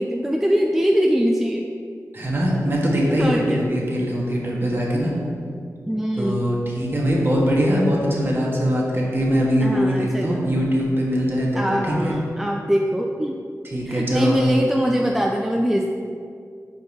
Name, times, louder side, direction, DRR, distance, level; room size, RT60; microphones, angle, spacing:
voice 1, 0.0-1.7 3.2-3.6 5.9-6.5 9.6-10.4 11.6-13.4 13.9-15.9, equal, 5° right, 1 dB, 0.4 m, -22 dB
voice 2, 2.1-5.1 6.2-12.2 13.6-14.5, equal, 35° right, -3 dB, 1.5 m, -22 dB
5.3 x 4.6 x 5.3 m, 2.3 s
wide cardioid pair, 85°, 6 cm